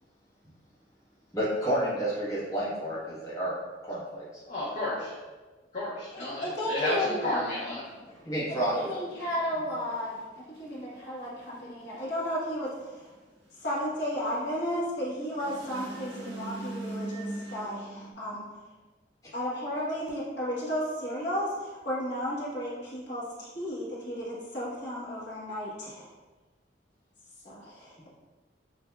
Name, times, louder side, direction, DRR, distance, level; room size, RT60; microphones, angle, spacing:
voice 1, 1.3-3.5 3.9-4.2 8.2-8.9, right 1 dB, 20° left, -9 dB, 1.2 m, -30 dB
voice 2, 4.5-5.1 5.7-7.8, left 1 dB, 45° left, -9 dB, 1.0 m, -32 dB
voice 3, 6.1-7.5 8.7-10.2 10.6-13.1 13.6-18.4 19.3-26.1 27.4-28.1, equal, 65° left, -7 dB, 1.4 m, -33 dB
sound 1, 7.8-18.1, right 2 dB, 70° right, 1.0 m, -43 dB
6.8 x 2.7 x 2.3 m, 1.3 s
head